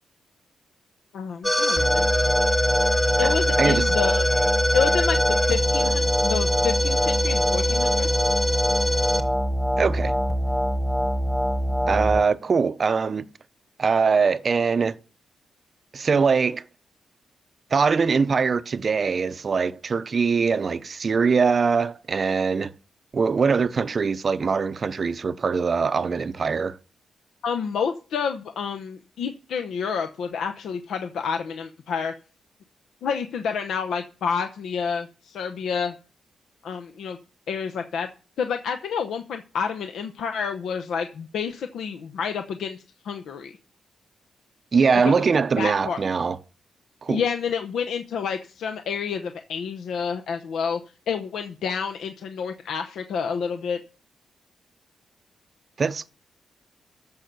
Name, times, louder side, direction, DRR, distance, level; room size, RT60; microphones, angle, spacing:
voice 1, 1.1-2.3 3.2-4.3 4.7-8.1 27.4-32.1 33.0-35.9 36.6-37.2 37.5-38.1 38.4-43.5 45.0-45.2 45.6-46.0 47.1-50.8 51.1-53.8, left 6 dB, 90° left, 0.8 m, -29 dB
sound 1, 1.4-12.2, equal, 10° left, 1.3 m, -22 dB
voice 2, 3.2-3.9 9.8-10.2 11.9-13.3 13.8-15.0 15.9-16.6 17.7-22.7 23.1-26.8 44.7-46.4 47.0-47.2 55.8-56.1, right 5 dB, 35° right, 0.5 m, -22 dB
14.0 x 5.5 x 6.7 m
wide cardioid pair, 175°, 0 cm